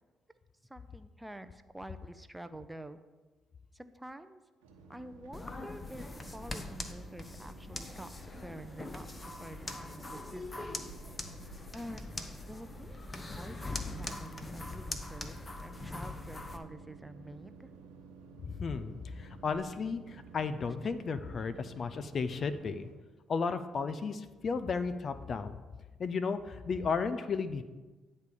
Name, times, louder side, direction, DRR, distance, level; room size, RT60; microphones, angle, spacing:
voice 1, 0.7-3.0 3.7-4.4 4.9-10.9 11.7-17.7 20.8-20.9, right 1 dB, 10° right, 11 dB, 0.5 m, -48 dB
sound 1, 4.6-22.9, right 4 dB, 90° right, 1.1 m, -53 dB
sound 2, 5.3-16.6, left 2 dB, 25° left, 0.9 m, -42 dB
voice 2, 18.4-22.9 23.3-25.6 26.0-27.6, left 5 dB, 50° left, 12 dB, 0.5 m, -34 dB
9.7 x 3.3 x 6.9 m, 1.3 s
hypercardioid pair, 55°, 0 cm